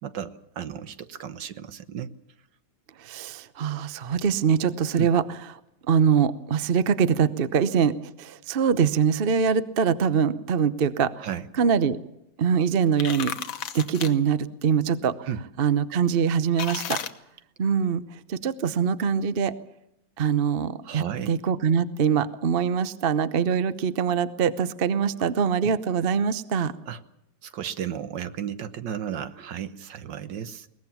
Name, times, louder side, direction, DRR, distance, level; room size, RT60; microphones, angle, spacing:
voice 1, 0.0-2.1 5.0-5.1 11.2-11.5 15.3-15.4 20.8-21.3 25.2-25.3 25.6-25.7 26.9-27.0 27.4-30.7, right 9 dB, 70° right, 12 dB, 1.7 m, -34 dB
voice 2, 3.0-5.2 5.9-11.3 11.6-12.0 12.4-13.3 13.7-15.3 15.6-17.0 17.6-18.0 18.3-19.5 20.2-26.7, right 7 dB, 45° right, 15 dB, 0.8 m, -23 dB
sound 1, 12.8-14.1 16.6-17.1, left 9 dB, 85° left, 1.9 m, -33 dB
22.0 x 19.5 x 7.2 m, 0.85 s
omnidirectional pair, 2.1 m